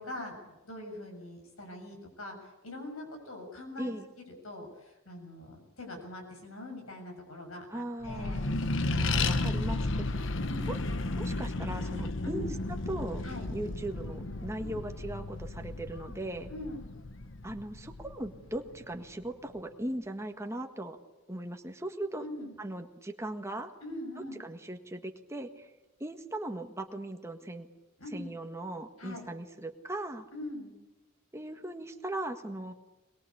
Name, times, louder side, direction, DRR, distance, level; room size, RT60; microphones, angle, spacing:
voice 1, 0.0-2.4 2.6-3.9 4.4-8.5 10.4-10.9 12.2-12.5 13.2-13.5 14.6-14.8 16.5-16.9 22.2-22.5 23.8-24.5 28.0-28.3 29.0-29.3 30.3-30.7, left 1 dB, 85° left, 3 dB, 6.9 m, -43 dB
voice 2, 7.7-8.4 9.0-10.3 10.7-10.8 11.1-12.5 12.9-13.2 13.5-16.5 17.4-21.0 21.3-22.3 22.6-23.7 24.2-25.7 26.0-27.7 28.1-30.3 31.3-32.7, right 1 dB, 15° right, 5 dB, 1.6 m, -38 dB
Accelerating revving vroom, 8.0-19.0, left 2 dB, 60° left, 1.1 m, -33 dB
22.0 x 22.0 x 8.6 m, 1.1 s
head